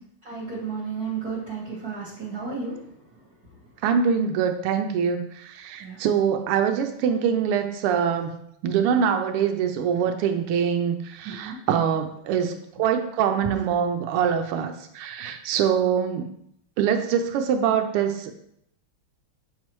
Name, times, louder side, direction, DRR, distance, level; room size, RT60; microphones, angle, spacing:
voice 1, 0.2-3.6 5.8-6.0 11.2-11.6 13.4-13.7, right 4 dB, 50° right, -7 dB, 1.6 m, -34 dB
voice 2, 3.8-8.3 8.6-12.5 12.8-16.3 16.8-18.3, right 7 dB, 90° right, 7 dB, 1.6 m, -24 dB
7.4 x 4.7 x 3.0 m, 0.73 s
omnidirectional pair, 2.4 m